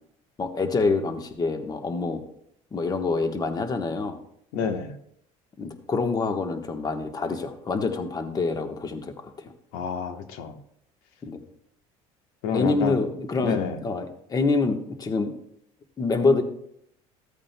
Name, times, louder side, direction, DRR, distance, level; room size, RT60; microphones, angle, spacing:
voice 1, 0.4-2.2 2.7-4.2 5.6-9.5 11.2-11.4 12.5-15.3 16.0-16.4, left 3 dB, 25° left, 6 dB, 1.2 m, -26 dB
voice 2, 4.5-4.9 9.7-10.5 12.4-13.0 13.4-13.8, left 6 dB, 80° left, 7 dB, 1.1 m, -28 dB
14.5 x 8.5 x 2.2 m, 0.70 s
cardioid pair, 115°, 15 cm